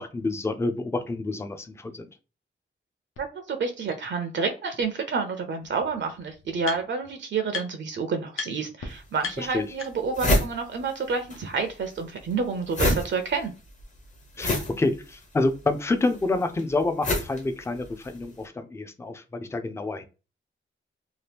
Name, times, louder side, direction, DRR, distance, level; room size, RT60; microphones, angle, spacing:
voice 1, 0.0-2.1 9.4-9.6 14.4-20.0, left 2 dB, 15° left, 8 dB, 0.3 m, -28 dB
sound 1, 3.2-3.3 3.9-4.0 5.3-5.4 5.6-7.1 7.5-7.9 8.3-8.5 8.8-8.9 9.2-10.2, left 5 dB, 80° left, 0.7 m, -37 dB
voice 2, 3.2-13.5, right 5 dB, 60° right, 7 dB, 0.5 m, -29 dB
sound 2, 8.9-9.0 9.5-9.6 9.8-11.4 11.7-18.2, left 1 dB, 35° left, 0.7 m, -28 dB
2.8 x 2.4 x 3.3 m, 0.32 s
wide cardioid pair, 165°, 21 cm